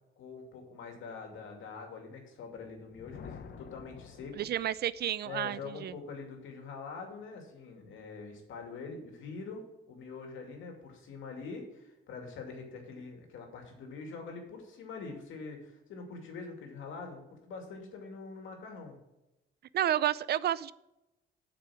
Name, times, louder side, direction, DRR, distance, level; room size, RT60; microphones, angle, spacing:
voice 1, 0.2-4.5 5.2-19.0, left 4 dB, 80° left, 2 dB, 2.5 m, -44 dB
Thunder, 2.6-5.2, left 6 dB, 55° left, 0.9 m, -50 dB
voice 2, 4.4-5.9 19.7-20.7, right 11 dB, 55° right, 19 dB, 0.4 m, -30 dB
8.3 x 6.0 x 6.2 m, 0.93 s
cardioid pair, 90°, 20 cm